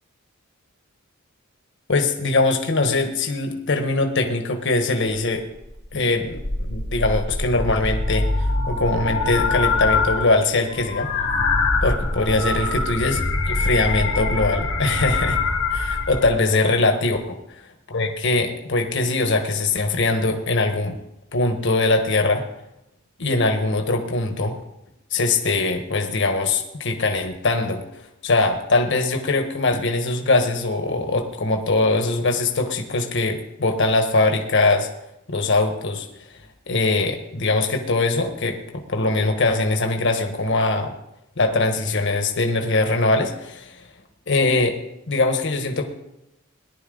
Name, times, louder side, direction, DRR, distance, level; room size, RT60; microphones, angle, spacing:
voice 1, 1.9-5.5 5.9-11.1 11.8-15.4 15.7-17.2 17.9-21.0 21.3-22.4 23.2-24.6 25.1-34.9 35.3-36.1 36.7-38.6 38.9-40.9 41.4-43.8 44.3-44.8 45.1-45.9, left 2 dB, 60° left, 4 dB, 1.4 m, -22 dB
sound 1, 5.6-5.9 6.2-10.3 10.6-16.3, left 3 dB, 85° left, 2.2 m, -24 dB
18.5 x 11.0 x 3.9 m, 0.87 s
head